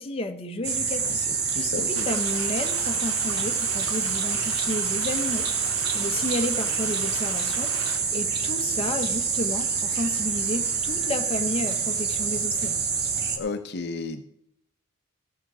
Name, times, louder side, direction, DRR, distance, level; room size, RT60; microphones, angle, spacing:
voice 1, 0.0-1.3 1.5-5.5 5.9-12.8, left 1 dB, 30° left, 4 dB, 0.9 m, -32 dB
sound 1, 0.6-13.4, right 5 dB, 50° right, 1.5 m, -27 dB
voice 2, 1.0-2.1 13.4-14.2, left 3 dB, 55° left, 7 dB, 0.8 m, -33 dB
sound 2, 1.9-8.0, right 4 dB, 85° right, 1.8 m, -38 dB
15.0 x 5.9 x 6.1 m, 0.75 s
head